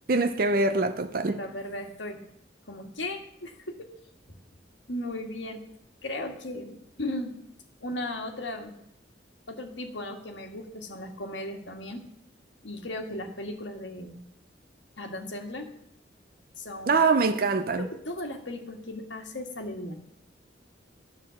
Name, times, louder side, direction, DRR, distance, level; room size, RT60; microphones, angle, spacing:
voice 1, 0.1-1.4 16.9-17.9, right 3 dB, 50° right, 0.6 m, -24 dB
voice 2, 1.3-2.2 2.7-3.9 4.9-5.6 6.0-7.4 7.8-8.8 9.5-12.1 12.6-14.2 15.0-15.7 16.6-17.0 17.8-20.0, left 1 dB, 75° left, 1.6 m, -36 dB
11.0 x 6.2 x 7.7 m
head